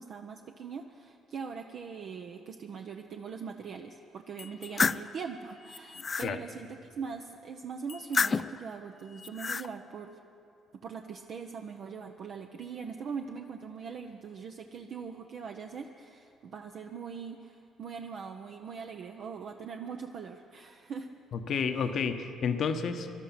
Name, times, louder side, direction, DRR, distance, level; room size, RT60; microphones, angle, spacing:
voice 1, 0.0-10.2 10.7-21.1, right 6 dB, 60° right, 3 dB, 0.7 m, -41 dB
sound 1, 4.4-5.1 5.7-6.3 7.9-8.6 9.2-9.7, left 5 dB, 35° left, 0.3 m, -30 dB
voice 2, 5.9-6.4 21.3-23.1, left 6 dB, 60° left, 7 dB, 1.0 m, -31 dB
20.0 x 12.0 x 5.9 m, 2.7 s
supercardioid pair, 60°, 0 cm